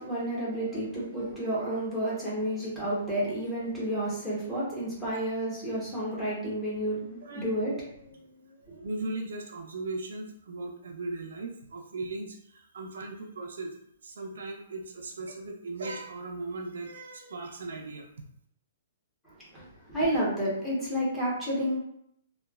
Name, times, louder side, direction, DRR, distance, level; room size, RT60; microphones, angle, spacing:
voice 1, 0.0-8.2 8.7-8.9 19.5-21.8, right 1 dB, 5° left, -8 dB, 0.8 m, -31 dB
voice 2, 8.8-13.7 14.0-18.1, right 2 dB, 75° right, 2 dB, 0.5 m, -38 dB
3.0 x 2.2 x 2.3 m, 0.73 s
hypercardioid pair, 170°, 0 cm